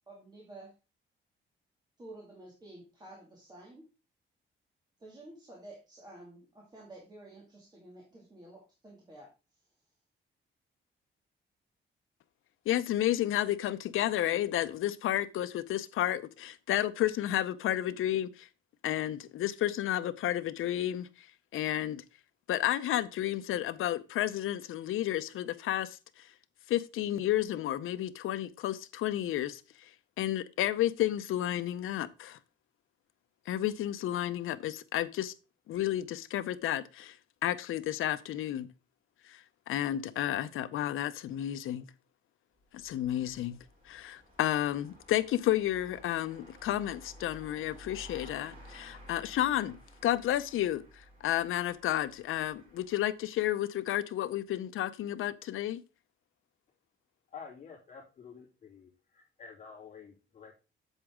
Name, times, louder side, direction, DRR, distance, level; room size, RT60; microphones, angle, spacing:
voice 1, 0.1-0.7 2.0-3.9 5.0-9.3, right 2 dB, 20° right, 2.3 m, -51 dB
voice 2, 12.7-18.5 18.8-21.1 21.5-22.0 22.5-26.0 26.7-29.6 30.2-32.4 33.5-35.3 35.7-37.2 37.4-38.7 39.3-39.4 39.7-41.9 42.8-43.6 43.9-49.8 50.0-50.8 51.2-55.8, left 12 dB, 80° left, 0.7 m, -31 dB
sound 1, 42.6-53.2, equal, 40° right, 5.6 m, -54 dB
voice 3, 57.3-60.5, left 6 dB, 35° left, 3.0 m, -50 dB
8.1 x 7.3 x 3.6 m
cardioid pair, 165°, 21 cm